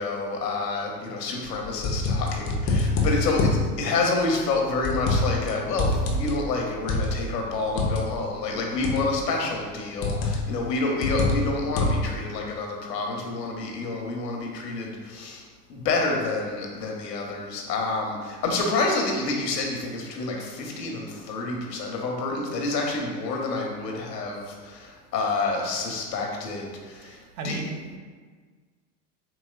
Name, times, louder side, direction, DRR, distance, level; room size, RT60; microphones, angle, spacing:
voice 1, 0.0-15.4 15.7-27.6, left 3 dB, 85° left, 0 dB, 0.9 m, -28 dB
sound 1, 1.5-3.6 4.3-5.5 5.8-8.0 8.8-9.2 10.0-10.5 11.0-12.1, left 2 dB, 30° left, 0.5 m, -25 dB
voice 2, 27.4-28.0, right 4 dB, 55° right, 5 dB, 0.5 m, -35 dB
4.1 x 3.0 x 2.4 m, 1.5 s
hypercardioid pair, 105°, 48 cm